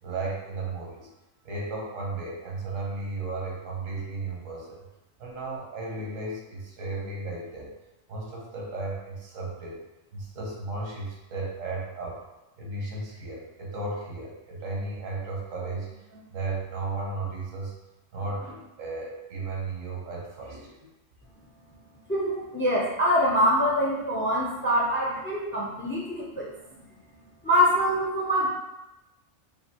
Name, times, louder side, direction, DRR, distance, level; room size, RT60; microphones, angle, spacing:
voice 1, 0.0-1.1 1.4-4.8 5.2-7.7 8.1-9.8 10.1-12.2 12.6-17.7 18.1-20.9 26.7-27.0, right 3 dB, 90° right, -2 dB, 1.4 m, -35 dB
voice 2, 22.1-26.5 27.4-28.5, equal, 15° left, -4 dB, 0.4 m, -24 dB
5.1 x 2.7 x 2.8 m, 0.97 s
omnidirectional pair, 1.3 m